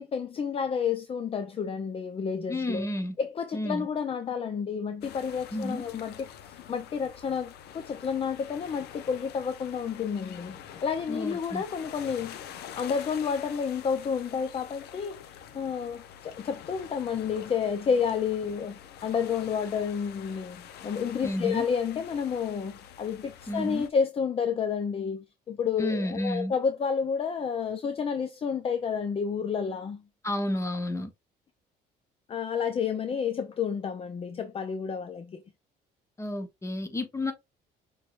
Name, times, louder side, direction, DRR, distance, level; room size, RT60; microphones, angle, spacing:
voice 1, 0.0-2.9 3.2-12.4 12.7-30.0 32.3-35.4, left 6 dB, 35° left, 0.6 m, -30 dB
voice 2, 2.5-3.2 3.5-3.9 5.5-5.8 11.1-11.6 21.2-21.6 23.5-23.8 25.8-26.5 30.2-31.1 36.2-37.3, left 1 dB, 15° left, 1.0 m, -31 dB
Waves and seagulls, 5.0-23.9, left 9 dB, 75° left, 0.8 m, -46 dB
5.9 x 3.2 x 2.5 m
cardioid pair, 110°, 17 cm